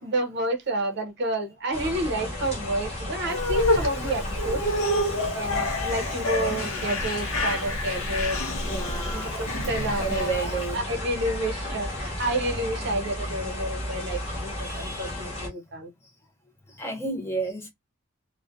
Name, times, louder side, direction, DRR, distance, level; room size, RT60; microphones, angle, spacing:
voice 1, 0.0-4.6 5.1-8.4 9.1-15.9, right 1 dB, 50° right, 0.6 m, -30 dB
sound 1, 1.7-15.5, left 1 dB, 30° left, 0.9 m, -33 dB
sound 2, 3.3-10.7, left 1 dB, 65° left, 0.7 m, -28 dB
voice 2, 8.6-9.4 10.0-10.8 12.8-12.9 14.6-15.3 16.7-17.7, right 3 dB, 10° left, 0.5 m, -32 dB
2.4 x 2.1 x 2.5 m
head